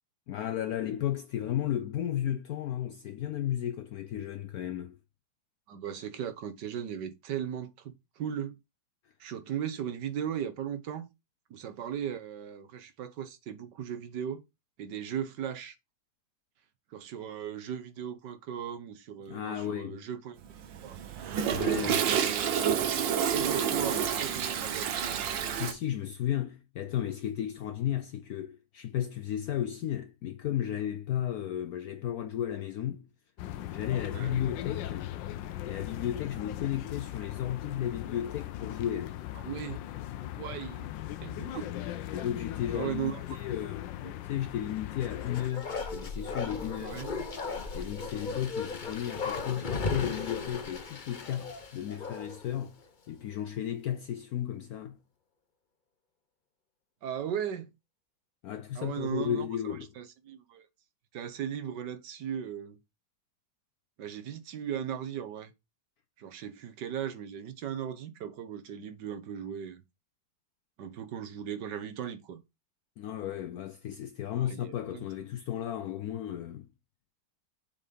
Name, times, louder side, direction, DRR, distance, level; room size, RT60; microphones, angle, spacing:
voice 1, 0.3-5.0 19.3-20.0 21.5-22.0 25.5-33.1 33.7-35.1 35.7-39.2 42.1-43.9 44.2-47.0 47.7-52.8 53.1-55.0 58.4-59.9 73.0-76.7, left 11 dB, 70° left, 0.9 m, -34 dB
voice 2, 5.7-8.6 9.2-11.1 11.5-14.4 14.8-15.7 16.9-20.4 20.8-21.0 21.7-22.5 23.3-24.9 34.1-34.4 39.4-39.8 40.4-40.9 41.2-41.7 42.7-43.2 43.6-43.7 44.0-44.1 46.8-47.1 57.0-57.7 58.7-60.6 61.1-62.8 64.0-65.5 66.2-69.8 70.8-72.4 74.4-75.0, right 9 dB, 70° right, 1.6 m, -37 dB
Toilet flush, 20.4-25.7, right 8 dB, 90° right, 1.7 m, -29 dB
sound 1, 33.4-45.5, left 13 dB, 90° left, 1.4 m, -39 dB
Bark, 44.9-52.5 52.8-52.9, left 4 dB, 40° left, 0.8 m, -36 dB
7.1 x 4.2 x 5.3 m
omnidirectional pair, 2.0 m